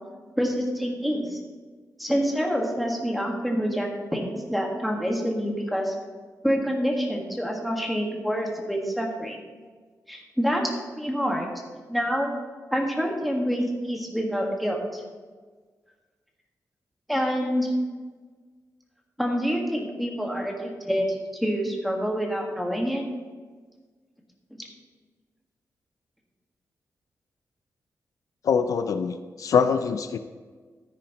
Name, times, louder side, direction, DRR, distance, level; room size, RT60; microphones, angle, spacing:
voice 1, 0.4-1.4 2.0-5.9 6.4-9.4 10.1-10.6 10.9-11.5 11.9-12.3 12.7-15.0 17.1-17.7 19.2-23.0 24.5-24.6, equal, ahead, 0 dB, 1.6 m, -27 dB
voice 2, 28.4-30.2, left 6 dB, 70° left, 10 dB, 0.4 m, -24 dB
13.0 x 10.0 x 3.0 m, 1.4 s
wide cardioid pair, 150°, 6 cm